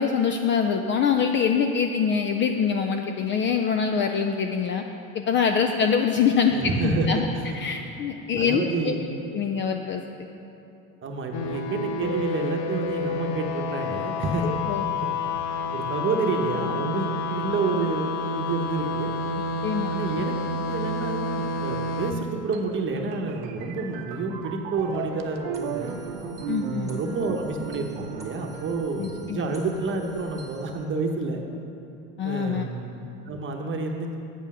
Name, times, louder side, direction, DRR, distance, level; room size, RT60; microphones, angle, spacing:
voice 1, 0.0-4.8 5.1-6.5 6.8-7.3 7.5-8.9 9.3-10.0 14.4-14.8 19.6-19.9 26.5-26.9 29.0-29.4 32.2-32.7, left 6 dB, 30° left, 4 dB, 0.4 m, -24 dB
voice 2, 6.5-7.5 8.4-9.0 11.0-14.5 15.7-19.1 19.9-20.3 20.6-26.0 26.7-31.4 32.2-32.9 33.3-34.2, right 3 dB, 30° right, 3 dB, 1.0 m, -29 dB
sound 1, 11.3-22.1, left 3 dB, 65° left, 1.0 m, -29 dB
sound 2, 22.5-29.2, right 7 dB, 70° right, 0.8 m, -36 dB
sound 3, 25.5-30.8, right 2 dB, 10° right, 1.5 m, -46 dB
8.4 x 5.5 x 6.1 m, 2.9 s
supercardioid pair, 100°, 41 cm